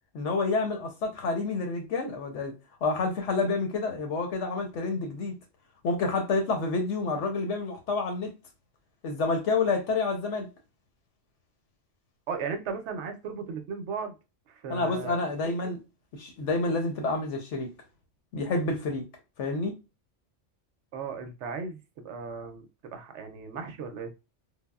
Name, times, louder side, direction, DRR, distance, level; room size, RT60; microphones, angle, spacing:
voice 1, 0.1-2.5 2.8-5.3 5.8-8.3 9.0-10.5 14.7-15.8 16.2-17.7 18.3-19.0 19.4-19.7, left 3 dB, 80° left, 1.0 m, -28 dB
voice 2, 12.3-14.2 14.5-15.2 20.9-22.7 22.9-24.1, right 5 dB, 75° right, 0.9 m, -36 dB
3.4 x 2.0 x 2.3 m
omnidirectional pair, 1.2 m